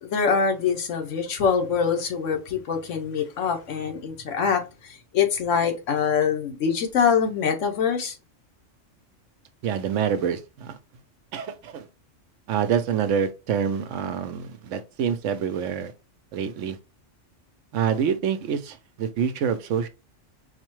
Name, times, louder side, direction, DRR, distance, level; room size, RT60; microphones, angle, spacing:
voice 1, 0.0-8.1, left 6 dB, 85° left, 1.2 m, -24 dB
voice 2, 9.6-10.8 11.3-11.9 12.5-15.9 16.3-16.8 17.7-19.9, right 7 dB, 85° right, 1.0 m, -26 dB
4.6 x 2.2 x 3.0 m
omnidirectional pair, 1.2 m